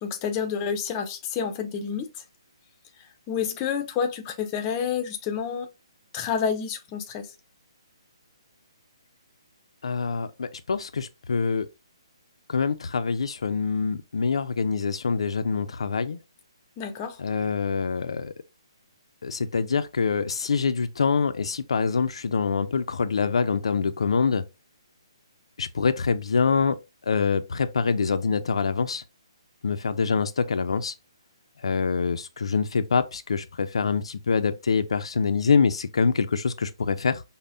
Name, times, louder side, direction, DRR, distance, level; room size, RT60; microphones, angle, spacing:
voice 1, 0.0-2.2 3.3-5.7 6.1-7.3 16.8-17.2, left 7 dB, 20° left, 0.5 m, -29 dB
voice 2, 9.8-11.7 12.5-16.2 17.2-18.3 19.2-24.4 25.6-26.8 27.1-29.0 29.6-30.9 31.6-37.2, left 5 dB, 75° left, 0.4 m, -25 dB
5.3 x 2.0 x 2.6 m
hypercardioid pair, 160°, 3 cm